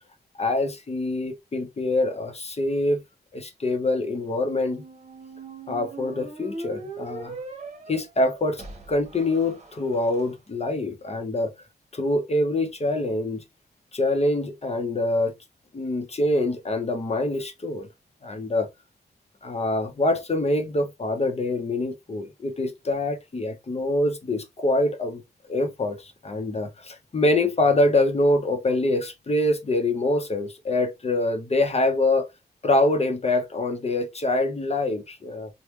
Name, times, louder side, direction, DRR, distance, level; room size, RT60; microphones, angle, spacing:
voice 1, 0.4-3.0 3.3-4.8 5.7-7.4 7.9-11.5 11.9-13.4 13.9-15.4 15.7-17.9 18.2-18.7 19.4-25.2 25.5-32.3 32.6-35.5, left 2 dB, 40° left, 0.8 m, -25 dB
sound 1, 4.3-10.2, right 2 dB, 40° right, 1.0 m, -40 dB
3.3 x 2.2 x 3.1 m
wide cardioid pair, 90°, 17 cm